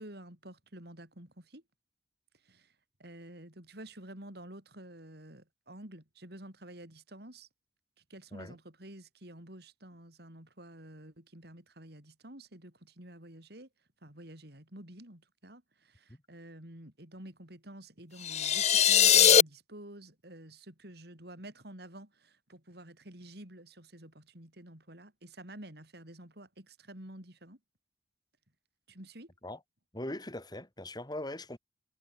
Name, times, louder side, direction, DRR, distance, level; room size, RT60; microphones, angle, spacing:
voice 1, 0.0-1.6 2.4-2.7 3.0-7.5 8.1-13.7 14.0-27.6 28.9-29.3, right 1 dB, 65° right, 6.4 m, -50 dB
sound 1, 18.2-19.4, left 9 dB, 40° left, 0.8 m, -21 dB
voice 2, 29.9-31.6, left 1 dB, 25° left, 3.3 m, -40 dB
head